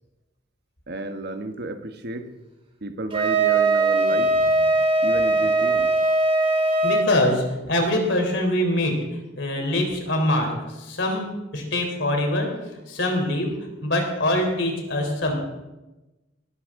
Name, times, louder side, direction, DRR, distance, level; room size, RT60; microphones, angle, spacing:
voice 1, 0.9-2.3 2.8-4.3 5.0-5.9, right 2 dB, 55° right, 7 dB, 1.2 m, -32 dB
Wind instrument woodwind instrument, 3.1-7.1, right 2 dB, 30° right, 2.3 m, -20 dB
voice 2, 6.8-9.0 9.4-11.3 11.5-12.5 12.9-13.5 13.8-15.3, left 1 dB, 65° left, 2 dB, 3.6 m, -23 dB
19.0 x 13.0 x 3.7 m, 1.1 s
head